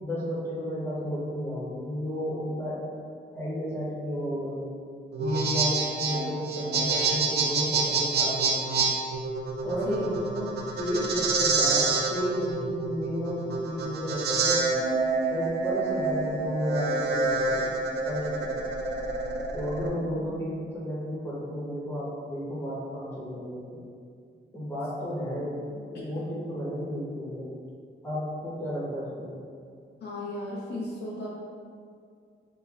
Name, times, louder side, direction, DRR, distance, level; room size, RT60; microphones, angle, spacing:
voice 1, 0.0-2.8 3.3-4.7 5.2-8.8 9.6-14.6 15.3-18.5 19.5-23.8 24.5-27.5 28.0-29.4, equal, 15° left, -7 dB, 0.9 m, -32 dB
sound 1, 5.1-19.9, right 4 dB, 55° right, 0.5 m, -27 dB
voice 2, 9.9-10.3 20.0-20.3 26.1-26.3 30.0-31.3, left 1 dB, 60° left, -5 dB, 0.6 m, -35 dB
5.1 x 2.2 x 2.4 m, 2.2 s
wide cardioid pair, 135°, 20 cm